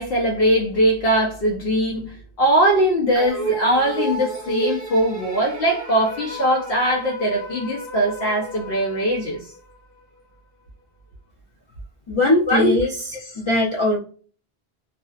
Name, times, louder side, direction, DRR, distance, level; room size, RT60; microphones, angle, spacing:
voice 1, 0.0-9.5 12.5-12.7 13.1-13.3, right 1 dB, 70° left, 0.8 m, -21 dB
sound 1, 3.1-9.7, right 2 dB, 15° right, 1.0 m, -32 dB
voice 2, 12.1-12.9 13.4-14.0, left 2 dB, 45° left, 0.4 m, -19 dB
2.5 x 2.1 x 2.3 m
omnidirectional pair, 1.1 m